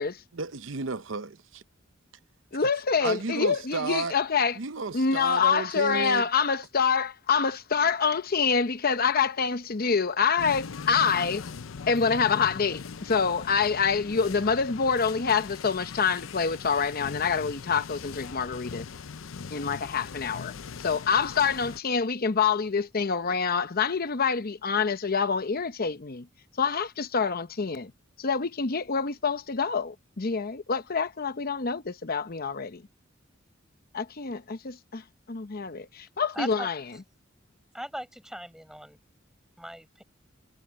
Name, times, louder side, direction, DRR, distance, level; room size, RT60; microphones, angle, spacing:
voice 1, 0.3-1.6 3.0-4.2 4.6-6.2, right 4 dB, 70° right, 0.8 m, -32 dB
voice 2, 2.5-4.6 4.9-11.4 11.9-18.9 19.5-26.3 26.6-27.9 28.2-32.8 33.9-36.8, left 5 dB, 50° left, 0.8 m, -26 dB
sound 1, 10.4-21.8, left 5 dB, 85° left, 0.6 m, -40 dB
voice 3, 36.3-36.7 37.7-39.0 39.6-40.0, equal, 5° right, 5.7 m, -38 dB
head